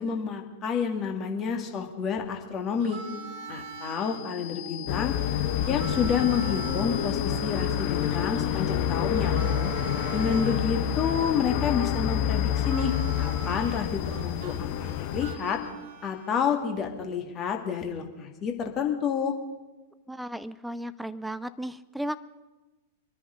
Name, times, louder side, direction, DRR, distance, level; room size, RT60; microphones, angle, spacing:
voice 1, 0.0-3.0 3.5-5.2 5.7-9.4 10.1-15.6 16.0-19.3, left 6 dB, 30° left, 3 dB, 2.1 m, -29 dB
sound 1, 2.3-16.0, left 5 dB, 70° left, 1.6 m, -41 dB
Harmonica, 2.8-4.2 5.6-10.6 12.5-16.5, right 6 dB, 45° right, 1.6 m, -43 dB
sound 2, 4.9-15.3, left 10 dB, 45° left, 1.1 m, -28 dB
voice 2, 20.1-22.2, right 1 dB, ahead, 15 dB, 0.6 m, -35 dB
24.5 x 10.0 x 5.2 m, 1.2 s
figure-of-eight pair, 95°, 0 cm